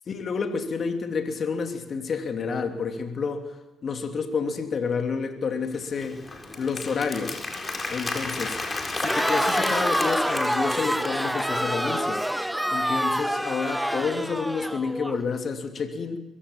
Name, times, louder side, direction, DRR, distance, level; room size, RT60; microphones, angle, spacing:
voice 1, 0.1-3.5 3.8-6.2 6.6-7.4 7.9-8.6 9.0-12.2 12.7-16.2, left 5 dB, 50° left, 6 dB, 3.0 m, -29 dB
Applause, 5.7-11.5, left 3 dB, 30° left, 4.4 m, -33 dB
Crowd, 9.0-15.2, equal, 5° right, 1.0 m, -27 dB
23.0 x 16.0 x 7.4 m, 1.1 s
hypercardioid pair, 50°, 0 cm